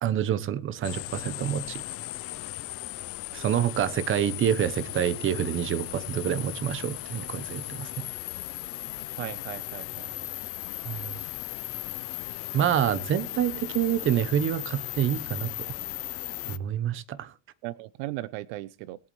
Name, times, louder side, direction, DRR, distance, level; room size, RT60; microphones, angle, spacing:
voice 1, 0.0-1.8 3.3-8.0 10.8-11.1 12.5-15.5 16.5-17.3, right 10 dB, 35° right, 1.0 m, -27 dB
sound 1, 0.8-16.6, left 16 dB, 40° left, 0.6 m, -37 dB
voice 2, 9.2-10.3 17.6-19.0, right 17 dB, 70° right, 0.6 m, -37 dB
21.5 x 8.5 x 3.2 m
supercardioid pair, 130°, 35 cm